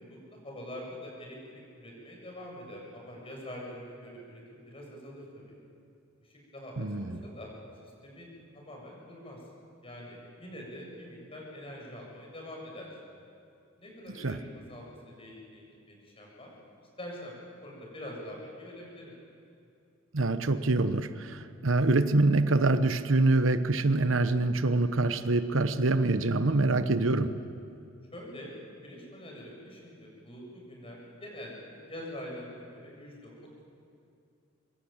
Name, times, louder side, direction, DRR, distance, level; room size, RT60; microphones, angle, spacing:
voice 1, 0.0-5.5 6.5-7.5 7.8-9.4 9.8-12.9 13.8-16.5 17.0-19.1 28.1-28.5 28.8-33.6, left 1 dB, 30° left, -1 dB, 7.2 m, -45 dB
voice 2, 6.8-7.2 14.1-14.4 20.1-27.3, right 2 dB, 80° right, 11 dB, 1.1 m, -25 dB
25.0 x 23.5 x 8.9 m, 2.5 s
head